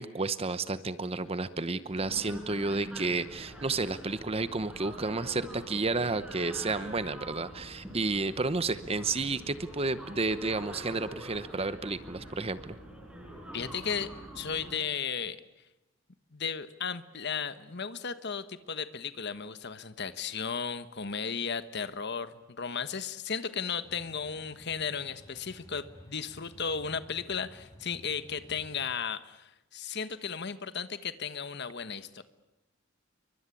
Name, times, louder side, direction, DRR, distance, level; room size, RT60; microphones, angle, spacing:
voice 1, 0.0-12.8, right 3 dB, 30° right, 13 dB, 0.9 m, -31 dB
sound 1, 1.9-14.8, right 1 dB, 5° right, 6.4 m, -45 dB
voice 2, 13.5-14.1 14.3-15.4 16.3-32.2, left 6 dB, 60° left, 12 dB, 1.4 m, -35 dB
sound 2, 23.8-29.0, equal, 20° left, 3.9 m, -54 dB
29.0 x 24.0 x 8.5 m, 0.96 s
head